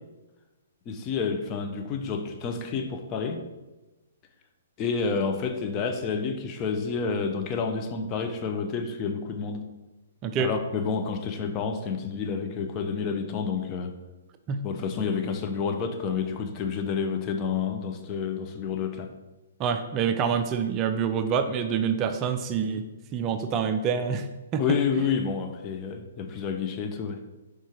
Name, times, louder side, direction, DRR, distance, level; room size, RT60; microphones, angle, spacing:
voice 1, 0.9-3.4 4.8-9.7 10.4-13.9 14.6-19.1 24.6-27.2, left 5 dB, 30° left, 5 dB, 0.6 m, -29 dB
voice 2, 19.6-22.9 23.1-24.3 24.5-24.8, right 6 dB, 25° right, 8 dB, 0.4 m, -26 dB
4.6 x 4.5 x 4.6 m, 1.1 s
hypercardioid pair, 130°, 0 cm